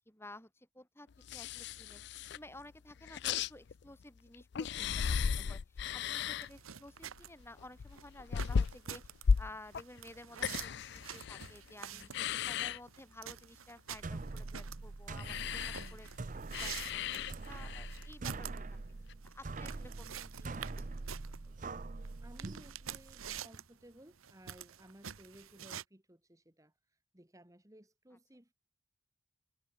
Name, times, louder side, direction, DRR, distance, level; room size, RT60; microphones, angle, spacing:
voice 1, 0.0-16.1 16.5-18.8 19.2-20.9 21.2-21.5 28.1-28.2, left 1 dB, 10° left, 4.3 m, -54 dB
sound 1, 1.2-2.6 2.9-4.0 4.3-6.7 7.0-11.7 12.0-12.8 15.2-18.1 19.1-19.2, left 6 dB, 55° left, 0.4 m, -35 dB
sound 2, 6.4-25.8, right 8 dB, 90° right, 1.2 m, -48 dB
sound 3, 13.9-23.4, right 3 dB, 40° right, 0.6 m, -44 dB
voice 2, 15.7-16.1 22.2-28.5, right 1 dB, 15° right, 1.6 m, -59 dB
head